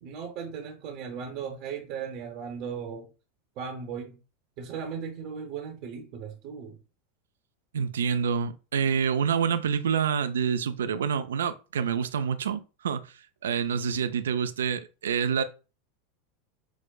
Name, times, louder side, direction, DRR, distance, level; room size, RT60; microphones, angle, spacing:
voice 1, 0.0-3.1 3.6-4.2 4.6-6.8, right 6 dB, 55° right, 0.7 m, -37 dB
voice 2, 7.7-13.1 13.4-15.4, right 7 dB, 80° right, 0.3 m, -27 dB
5.8 x 2.0 x 2.3 m
hypercardioid pair, 90°, 0 cm